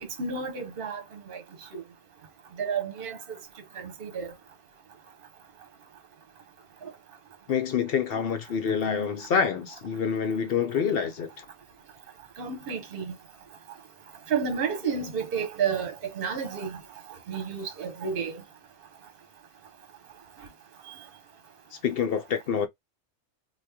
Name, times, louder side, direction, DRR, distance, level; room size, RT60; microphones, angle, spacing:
voice 1, 0.0-1.4 1.7-1.8 2.6-3.4 3.8-4.3 6.8-6.9 12.4-13.1 14.3-16.8 17.3-18.4, right 6 dB, 50° right, 1.0 m, -31 dB
voice 2, 7.5-11.4 21.8-22.7, left 7 dB, 60° left, 0.7 m, -27 dB
2.9 x 2.3 x 3.4 m
omnidirectional pair, 1.3 m